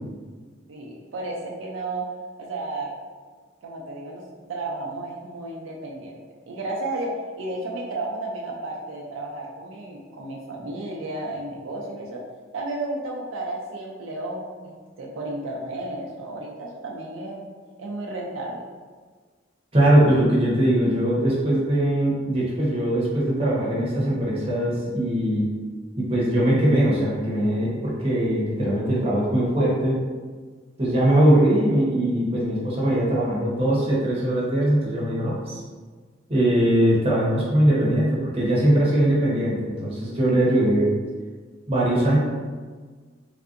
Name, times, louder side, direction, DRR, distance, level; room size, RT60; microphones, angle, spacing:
voice 1, 0.7-2.1 2.4-2.9 3.6-6.2 6.5-12.2 12.5-17.5 17.8-18.6, right 2 dB, 85° right, -1 dB, 0.4 m, -33 dB
voice 2, 19.7-25.4 26.0-30.0 30.8-35.6 36.3-40.9 41.7-42.2, right 1 dB, 30° right, -6 dB, 0.9 m, -21 dB
3.2 x 2.5 x 2.5 m, 1.5 s
head